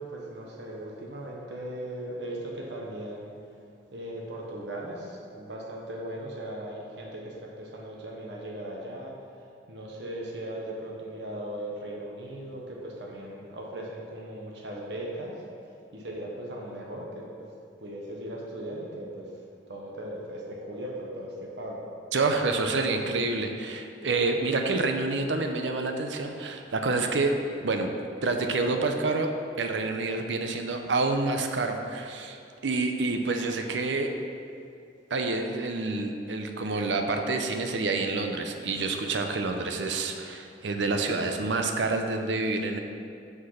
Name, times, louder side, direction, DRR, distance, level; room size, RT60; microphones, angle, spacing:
voice 1, 0.0-3.3 3.9-9.2 9.7-15.4 15.9-17.5 17.8-19.3 19.7-21.8, right 1 dB, 70° right, -2 dB, 1.1 m, -38 dB
voice 2, 22.1-27.3 27.6-27.9 28.2-29.3 29.6-32.4 32.6-34.1 35.1-42.8, right 3 dB, 85° right, 5 dB, 0.6 m, -28 dB
6.1 x 5.2 x 5.7 m, 2.5 s
head